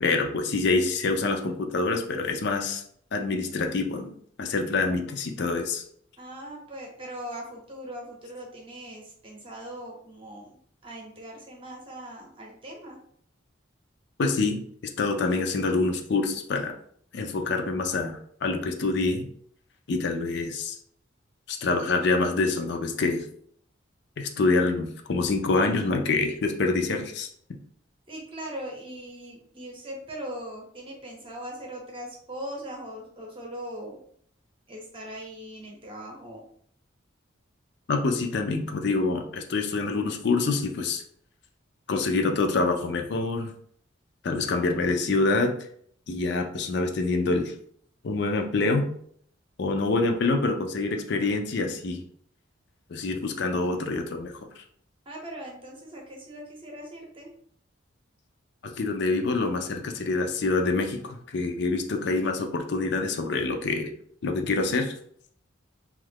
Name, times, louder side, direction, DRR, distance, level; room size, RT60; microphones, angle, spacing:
voice 1, 0.0-2.8 3.1-5.8 14.2-14.6 15.0-16.7 17.1-19.3 19.9-20.8 21.5-23.2 24.2-27.3 37.9-41.0 41.9-43.5 44.2-45.7 46.1-47.5 48.0-48.9 49.6-52.0 52.9-54.3 58.6-63.9 64.2-64.9, left 3 dB, 55° left, 4 dB, 0.4 m, -26 dB
voice 2, 6.2-10.6 10.8-13.0 28.1-34.0 34.7-36.4 55.1-57.3, right 1 dB, 25° right, 0 dB, 0.7 m, -40 dB
3.0 x 2.4 x 3.4 m, 0.62 s
head